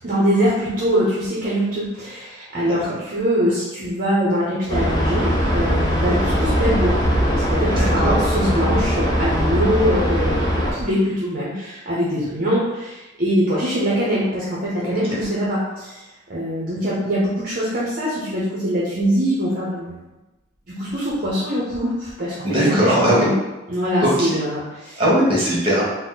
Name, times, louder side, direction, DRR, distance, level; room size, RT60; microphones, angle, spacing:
voice 1, 0.0-7.0 7.3-16.0 16.3-20.0 20.7-23.3 23.7-25.0, equal, 45° right, -7 dB, 0.8 m, -23 dB
sound 1, 4.7-10.7, equal, 20° left, 0.7 m, -20 dB
voice 2, 7.7-8.2 22.4-23.3 24.0-24.3 25.0-25.8, equal, 30° right, -6 dB, 1.4 m, -19 dB
4.1 x 2.1 x 3.9 m, 1.1 s
head